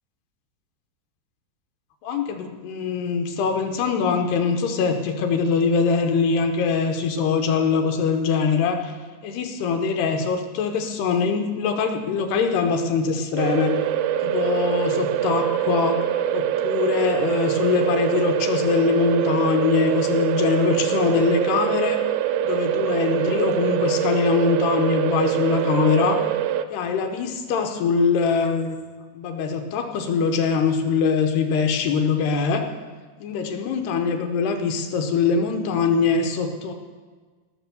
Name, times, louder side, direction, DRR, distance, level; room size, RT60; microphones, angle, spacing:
voice 1, 2.0-8.9 9.2-13.8 14.2-16.0 16.3-22.0 22.4-26.2 26.7-28.8 29.2-32.7 33.2-36.7, left 5 dB, 75° left, 5 dB, 2.6 m, -23 dB
sound 1, 13.4-26.7, right 10 dB, 85° right, 2.9 m, -24 dB
18.0 x 6.7 x 6.8 m, 1.4 s
omnidirectional pair, 5.2 m